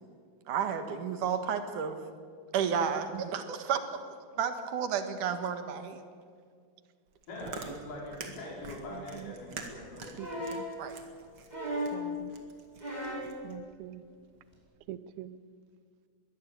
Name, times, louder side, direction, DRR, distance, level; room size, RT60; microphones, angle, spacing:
voice 1, 0.5-2.0 2.5-4.0 4.4-6.0 10.8-11.0, right 7 dB, 65° right, 8 dB, 2.8 m, -31 dB
Chewing mastication, 7.1-13.6, right 4 dB, 40° right, 2.3 m, -46 dB
voice 2, 7.3-10.2, left 1 dB, 60° left, -3 dB, 6.2 m, -43 dB
voice 3, 8.9-9.3 10.2-10.7 11.9-12.4 13.4-14.0 14.9-15.4, right 13 dB, 90° right, 15 dB, 2.6 m, -44 dB
sound 1, 10.2-10.7 11.5-12.0 12.8-13.3 14.5-14.6, equal, 10° right, 5.7 m, -35 dB
22.0 x 17.0 x 8.6 m, 2.1 s
omnidirectional pair, 4.3 m